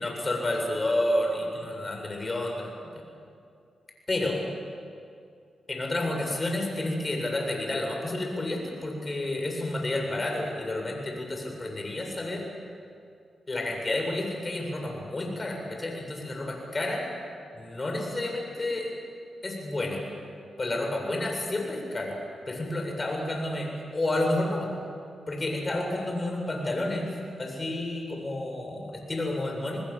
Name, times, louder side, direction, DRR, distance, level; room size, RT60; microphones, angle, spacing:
voice 1, 0.0-3.0 4.1-4.4 5.7-12.5 13.5-17.0 17.5-18.9 19.4-20.0 20.6-22.2 22.5-24.7 25.3-27.1 27.4-29.8, left 1 dB, 35° left, 1 dB, 7.8 m, -30 dB
27.5 x 19.5 x 7.6 m, 2.3 s
supercardioid pair, 45°, 0 cm